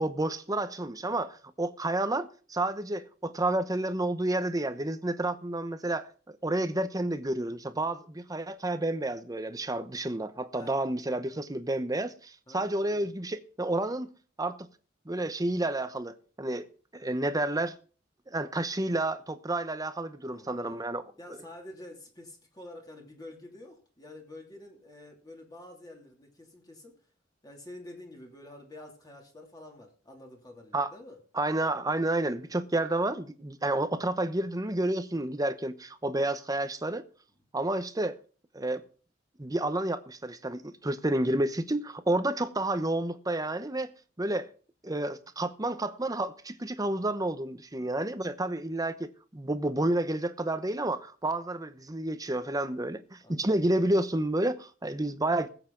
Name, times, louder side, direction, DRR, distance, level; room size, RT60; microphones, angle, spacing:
voice 1, 0.0-14.1 14.4-14.6 15.1-16.7 16.9-17.8 18.3-21.1 30.7-30.9 31.3-37.0 37.5-38.2 38.5-38.8 39.4-43.9 44.2-44.5 44.8-55.5, right 1 dB, 20° right, 0.9 m, -30 dB
voice 2, 12.5-13.1 20.2-20.8 21.2-26.9 27.4-31.2 53.2-53.5, left 1 dB, 20° left, 2.8 m, -48 dB
20.0 x 8.1 x 3.9 m
head